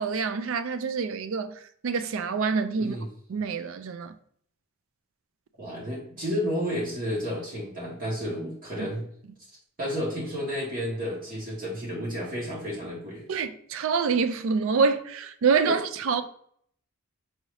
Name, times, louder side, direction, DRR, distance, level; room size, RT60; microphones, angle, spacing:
voice 1, 0.0-1.5 1.8-3.0 3.3-4.1 8.8-8.9 13.3-16.2, right 5 dB, 65° right, 0.4 m, -26 dB
voice 2, 5.6-9.0 9.8-13.2 15.6-15.8, equal, 40° right, 1.3 m, -31 dB
4.7 x 2.7 x 3.1 m
head